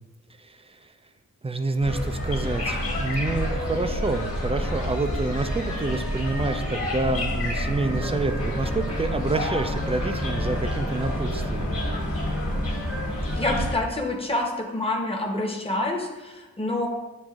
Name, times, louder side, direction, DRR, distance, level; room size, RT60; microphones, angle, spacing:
voice 1, 0.4-0.9 1.4-11.8, right 3 dB, 20° right, 8 dB, 0.3 m, -28 dB
sound 1, 1.8-13.7, left 1 dB, 40° left, 1.3 m, -28 dB
voice 2, 13.3-16.9, left 1 dB, 15° left, 0 dB, 0.8 m, -27 dB
7.3 x 2.5 x 2.4 m, 1.1 s
cardioid pair, 45°, 36 cm